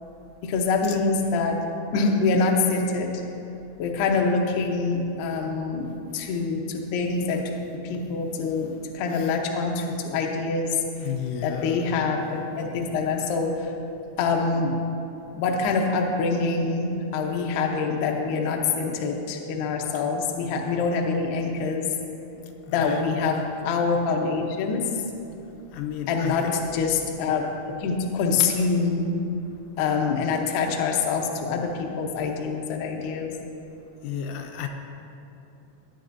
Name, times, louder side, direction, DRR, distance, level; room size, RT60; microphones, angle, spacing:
voice 1, 0.4-1.6 1.9-3.2 3.8-5.9 6.1-7.5 7.8-11.1 11.4-13.7 14.2-14.8 15.3-21.9 22.7-24.9 26.1-26.5 26.7-29.2 29.8-33.3, left 4 dB, 75° left, 1 dB, 2.6 m, -25 dB
voice 2, 11.0-11.9 22.7-23.0 25.7-26.6 34.0-34.7, left 8 dB, 90° left, 3 dB, 3.2 m, -32 dB
17.0 x 9.8 x 2.7 m, 2.8 s
omnidirectional pair, 5.6 m